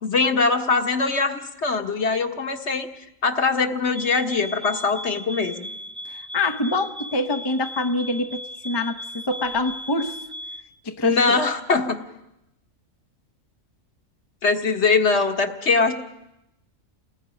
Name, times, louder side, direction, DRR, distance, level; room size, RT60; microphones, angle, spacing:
voice 1, 0.0-2.9 3.2-5.7 11.0-12.0 14.4-15.9, left 4 dB, 60° left, 5 dB, 1.7 m, -22 dB
sound 1, 3.9-10.7, equal, 25° right, 1.3 m, -37 dB
voice 2, 6.1-10.2 10.8-11.4, left 2 dB, 25° left, 7 dB, 0.7 m, -25 dB
29.5 x 19.5 x 5.2 m, 0.88 s
omnidirectional pair, 1.3 m